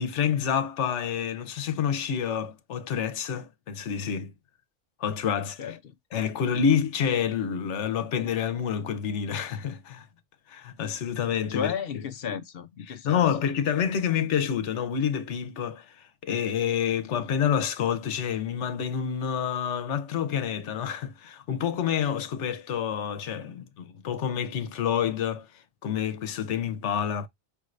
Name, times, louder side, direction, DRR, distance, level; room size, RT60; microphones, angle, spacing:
voice 1, 0.0-4.3 5.0-5.6 6.1-10.1 10.5-11.7 12.9-27.3, left 8 dB, 85° left, 1.1 m, -28 dB
voice 2, 5.6-5.9 11.5-13.2, left 7 dB, 65° left, 0.7 m, -33 dB
5.3 x 2.5 x 3.1 m
omnidirectional pair, 1.2 m